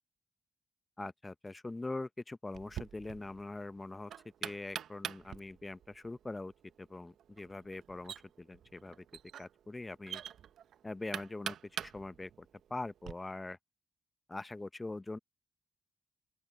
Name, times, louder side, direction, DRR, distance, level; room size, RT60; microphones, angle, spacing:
voice 1, 1.0-4.1 4.4-6.5 6.8-9.0 9.4-10.2 10.8-13.6 14.3-15.2, left 2 dB, 25° left, 0.8 m, -43 dB
Knock, 2.5-13.1, right 10 dB, 75° right, 0.9 m, -46 dB
open air
supercardioid pair, 45°, 0 cm